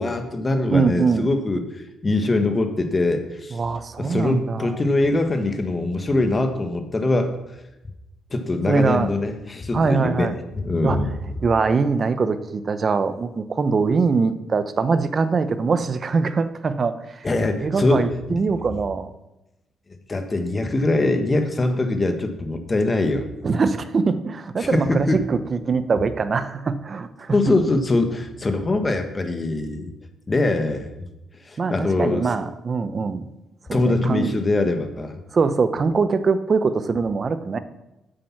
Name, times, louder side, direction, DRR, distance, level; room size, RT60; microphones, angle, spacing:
voice 1, 0.0-1.6 2.0-3.6 4.0-7.4 8.3-10.3 10.6-11.1 17.2-18.1 20.1-23.3 24.6-25.2 27.3-29.9 30.3-30.9 31.5-32.2 33.7-35.2, left 2 dB, 25° left, 7 dB, 1.4 m, -22 dB
voice 2, 0.7-1.3 3.5-4.8 8.7-9.1 9.7-10.4 10.8-11.1 11.4-17.3 17.6-19.1 23.4-27.4 31.6-33.3 33.7-34.3 35.3-37.6, right 4 dB, 40° right, 12 dB, 0.8 m, -22 dB
8.6 x 7.8 x 6.0 m, 0.94 s
cardioid pair, 90°, 0 cm